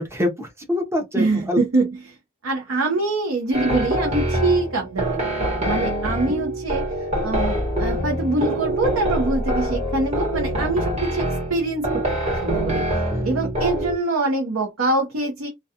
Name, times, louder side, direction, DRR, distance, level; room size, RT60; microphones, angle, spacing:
voice 1, 0.0-1.6 6.1-6.2 12.9-13.5, left 1 dB, 10° right, 0.7 m, -26 dB
voice 2, 1.1-2.1 2.4-6.8 7.2-11.2 11.5-12.0 12.4-12.8 13.2-15.5, right 2 dB, 70° right, 0.7 m, -24 dB
sound 1, 3.5-14.0, right 1 dB, 30° right, 1.1 m, -25 dB
2.3 x 2.3 x 2.7 m
head